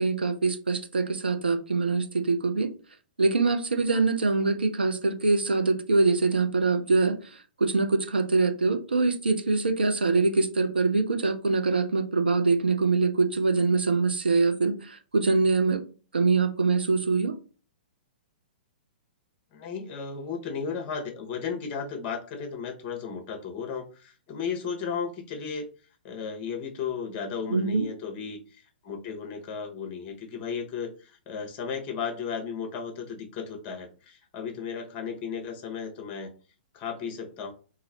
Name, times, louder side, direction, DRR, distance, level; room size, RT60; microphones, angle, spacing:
voice 1, 0.0-2.7 3.2-7.2 7.6-15.8 16.1-17.4 27.5-27.9, right 3 dB, 80° right, 7 dB, 0.5 m, -24 dB
voice 2, 19.5-25.7 26.0-36.3 36.7-37.5, left 6 dB, 30° left, 4 dB, 1.0 m, -35 dB
3.0 x 2.7 x 3.9 m, 0.36 s
figure-of-eight pair, 115°, 5 cm